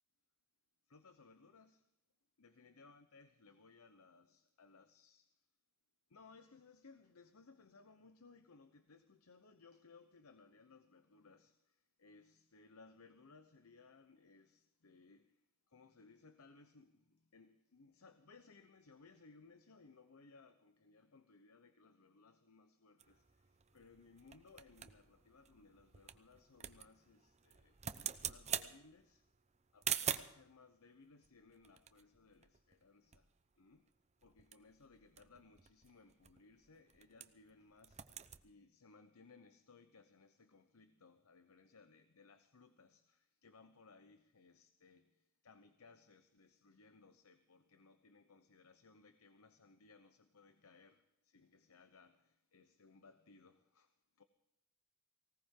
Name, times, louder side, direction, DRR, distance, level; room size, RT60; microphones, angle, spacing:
voice 1, 0.9-1.9 2.4-5.5 6.1-27.8 28.2-29.3 29.7-33.9 34.2-54.2, left 4 dB, 90° left, 0.9 m, -64 dB
sound 1, 23.0-30.4 31.2-32.9 33.1-33.2 33.5-33.8 34.2-37.5 37.8-38.4, right 8 dB, 30° right, 0.8 m, -45 dB
19.0 x 18.0 x 3.8 m
head